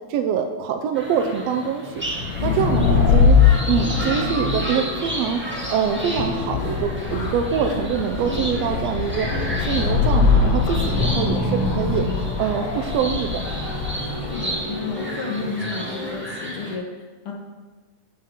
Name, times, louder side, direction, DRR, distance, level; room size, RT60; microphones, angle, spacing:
voice 1, 0.1-2.0 2.4-3.4 3.7-5.4 5.7-13.4, right 7 dB, 80° right, 5 dB, 1.4 m, -24 dB
sound 1, 0.9-16.7, right 1 dB, 10° right, 0.6 m, -33 dB
sound 2, 2.1-14.6, left 5 dB, 70° left, 2.3 m, -22 dB
sound 3, 2.3-16.1, right 1 dB, 50° right, 4.3 m, -35 dB
voice 2, 2.4-2.9 14.2-17.3, left 5 dB, 55° left, -1 dB, 1.9 m, -32 dB
7.5 x 6.6 x 7.2 m, 1.4 s
omnidirectional pair, 3.6 m